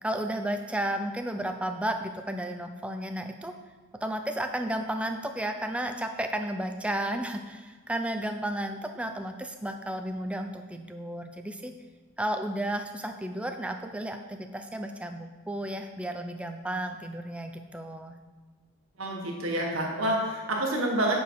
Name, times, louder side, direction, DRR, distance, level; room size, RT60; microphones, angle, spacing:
voice 1, 0.0-3.6 4.0-11.7 12.2-18.1, right 1 dB, 5° right, 5 dB, 0.4 m, -33 dB
voice 2, 19.0-21.2, right 1 dB, 65° right, -1 dB, 1.6 m, -28 dB
7.9 x 4.9 x 4.7 m, 1.5 s
head